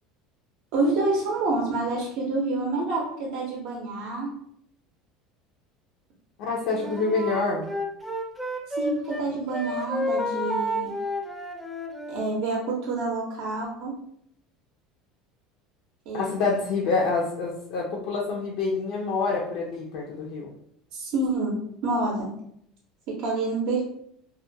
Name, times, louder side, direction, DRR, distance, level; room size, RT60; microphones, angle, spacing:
voice 1, 0.7-4.4 8.7-11.0 12.1-14.0 16.1-16.3 20.9-22.4 23.1-23.8, right 3 dB, 70° right, -2 dB, 0.5 m, -28 dB
voice 2, 6.4-7.7 16.1-20.5, left 4 dB, 70° left, -2 dB, 0.4 m, -27 dB
Wind instrument woodwind instrument, 6.7-9.3 9.5-12.3, left 1 dB, ahead, 0.4 m, -31 dB
2.4 x 2.1 x 2.6 m, 0.70 s
supercardioid pair, 115°, 0 cm